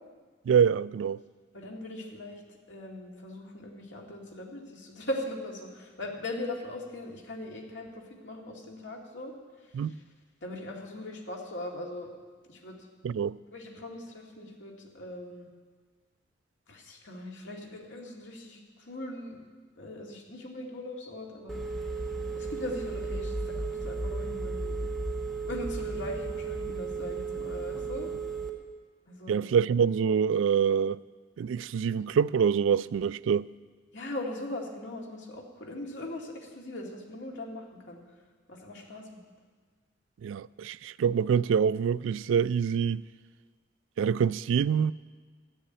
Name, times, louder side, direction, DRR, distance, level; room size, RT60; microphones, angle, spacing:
voice 1, 0.5-1.2 9.7-9.9 13.0-13.4 29.3-31.0 31.4-33.5 40.2-43.0 44.0-44.9, right 7 dB, 90° right, 0.3 m, -25 dB
voice 2, 1.5-2.4 2.7-9.3 9.8-9.9 10.4-12.1 12.5-12.9 13.5-15.5 16.7-19.4 19.8-21.6 22.3-24.8 25.4-28.1 29.1-29.4 33.9-38.0 38.5-39.2, left 1 dB, 75° left, 2.2 m, -40 dB
Telephone, 21.5-28.5, right 3 dB, ahead, 1.1 m, -34 dB
12.5 x 7.1 x 8.8 m
head